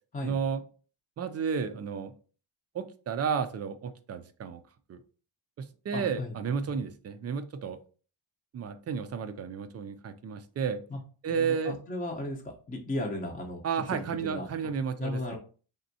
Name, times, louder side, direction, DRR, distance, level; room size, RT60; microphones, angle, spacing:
voice 1, 0.2-0.6 1.2-2.1 2.7-4.6 4.9-5.0 5.6-7.8 8.5-10.8 11.2-11.8 13.6-15.4, right 6 dB, 35° right, 9 dB, 0.4 m, -32 dB
voice 2, 5.9-6.3 6.6-6.7 10.9-11.0 11.3-12.4 12.7-13.6 13.9-14.5 15.0-15.4, left 1 dB, 20° left, 0 dB, 0.7 m, -35 dB
4.1 x 3.5 x 2.6 m, 0.38 s
cardioid pair, 130°, 47 cm